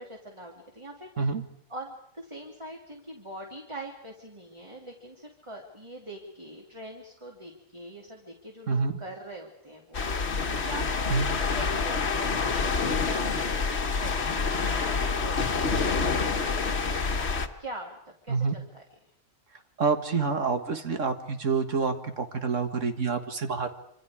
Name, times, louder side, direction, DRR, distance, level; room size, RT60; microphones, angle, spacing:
voice 1, 0.0-1.3 1.7-11.1 11.5-13.7 14.0-18.0 18.2-18.8, right 1 dB, 20° right, 0 dB, 2.6 m, -43 dB
sound 1, 9.9-17.5, left 4 dB, 55° left, 1.5 m, -27 dB
voice 2, 19.8-23.7, right 4 dB, 65° right, 6 dB, 2.0 m, -27 dB
26.5 x 26.0 x 4.9 m, 0.72 s
omnidirectional pair, 1.4 m